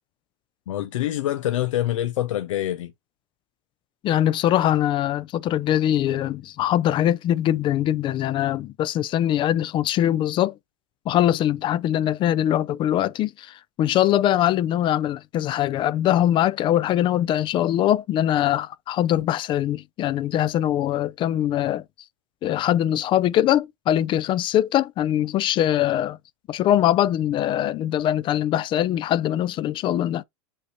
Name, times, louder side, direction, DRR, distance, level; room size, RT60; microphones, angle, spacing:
voice 1, 0.7-2.9, left 13 dB, 90° left, 0.6 m, -25 dB
voice 2, 4.0-10.5 11.1-21.8 22.4-26.2 26.5-30.2, left 12 dB, 30° left, 0.4 m, -22 dB
6.7 x 5.4 x 2.9 m
supercardioid pair, 130°, 16 cm